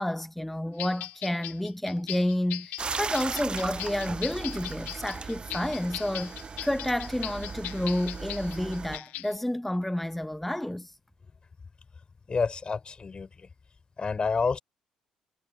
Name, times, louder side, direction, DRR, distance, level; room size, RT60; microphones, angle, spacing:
voice 1, 0.0-10.9, left 1 dB, 5° left, 0.8 m, -30 dB
sound 1, 0.8-9.3, left 17 dB, 65° left, 0.9 m, -39 dB
sound 2, 2.8-9.0, right 5 dB, 35° right, 0.8 m, -37 dB
voice 2, 12.3-13.5 14.0-14.6, left 4 dB, 35° left, 5.1 m, -29 dB
figure-of-eight pair, 45°, 3 cm